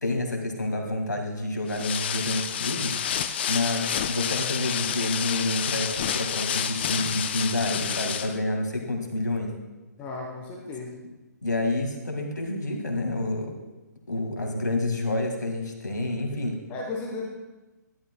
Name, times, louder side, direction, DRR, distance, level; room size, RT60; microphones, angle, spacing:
voice 1, 0.0-3.2 3.5-9.5 11.4-13.5 14.1-16.6, left 2 dB, 75° left, 3 dB, 1.9 m, -28 dB
sound 1, 1.7-8.4, left 9 dB, 35° left, 0.4 m, -29 dB
voice 2, 10.0-11.1 16.7-17.3, left 3 dB, 15° left, -1 dB, 0.9 m, -35 dB
12.0 x 11.0 x 2.2 m, 1.1 s
figure-of-eight pair, 135°, 10 cm